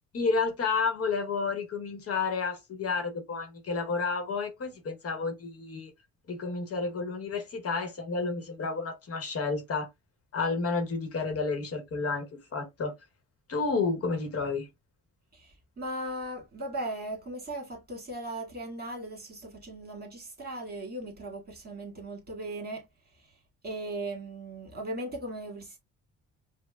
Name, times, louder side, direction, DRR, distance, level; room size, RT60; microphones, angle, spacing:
voice 1, 0.1-5.9 6.3-9.9 10.3-12.3 12.5-12.9 13.5-14.7, left 4 dB, 50° left, 1.0 m, -30 dB
voice 2, 15.3-22.8 23.2-23.3 23.6-25.8, right 1 dB, 30° right, 1.8 m, -38 dB
5.0 x 2.1 x 2.2 m
cardioid pair, 90°, 30 cm